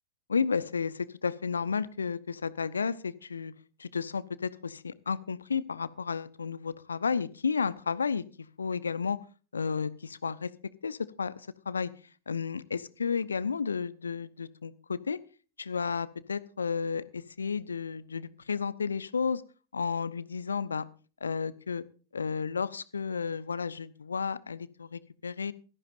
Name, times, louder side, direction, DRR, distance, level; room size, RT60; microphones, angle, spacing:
voice 1, 0.3-3.5 3.8-8.2 8.6-9.2 9.5-10.5 10.8-11.9 12.3-15.2 15.6-19.4 19.7-20.9 21.2-21.8 22.1-25.5, left 5 dB, 75° left, 18 dB, 0.8 m, -32 dB
17.5 x 13.5 x 2.5 m, 0.36 s
figure-of-eight pair, 90°, 0 cm